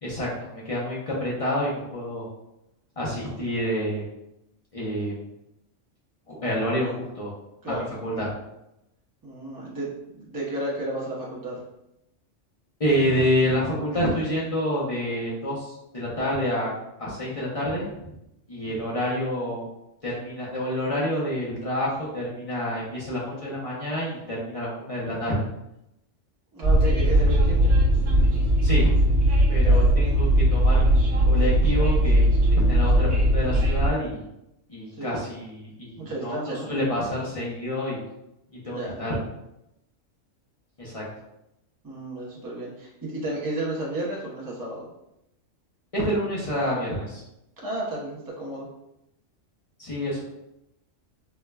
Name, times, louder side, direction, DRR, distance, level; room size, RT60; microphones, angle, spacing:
voice 1, 0.0-2.3 3.0-4.0 4.7-5.2 6.3-7.3 7.7-8.3 12.8-16.7 17.0-18.1 18.5-19.7 20.0-25.4 28.6-28.9 29.5-34.3 34.7-36.4 36.7-38.0 38.5-39.2 40.8-41.0 45.9-47.2 49.8-50.2, equal, 35° left, -6 dB, 0.6 m, -28 dB
voice 2, 9.2-11.6 18.6-18.9 26.5-27.6 29.6-30.0 34.9-35.2 36.0-36.7 38.7-39.0 41.8-44.9 47.6-48.7, right 1 dB, 20° right, -5 dB, 0.6 m, -32 dB
Train, 26.6-33.9, right 1 dB, 55° right, 1.1 m, -19 dB
4.4 x 2.1 x 2.2 m, 0.86 s
omnidirectional pair, 1.3 m